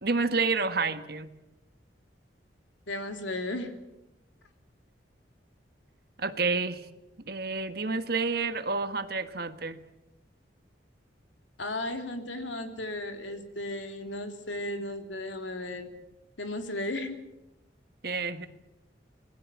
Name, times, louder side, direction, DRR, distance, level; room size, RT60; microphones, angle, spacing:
voice 1, 0.0-1.3 6.2-6.8 7.3-9.8 18.0-18.5, right 4 dB, 55° right, 10 dB, 1.5 m, -29 dB
voice 2, 2.9-3.7 11.6-15.9 16.4-17.2, left 1 dB, 80° left, 6 dB, 3.2 m, -35 dB
26.5 x 20.5 x 7.4 m, 0.94 s
head